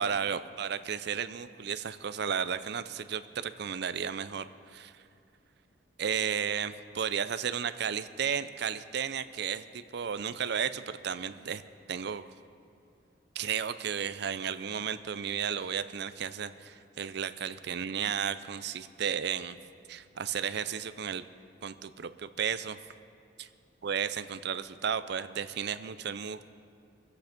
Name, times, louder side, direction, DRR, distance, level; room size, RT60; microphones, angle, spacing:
voice 1, 0.0-5.0 6.0-11.6 11.9-12.3 13.4-19.6 19.9-21.3 21.6-22.8 23.4-23.5 23.8-26.6, right 7 dB, 60° right, 12 dB, 0.5 m, -33 dB
23.0 x 8.2 x 5.2 m, 2.5 s
head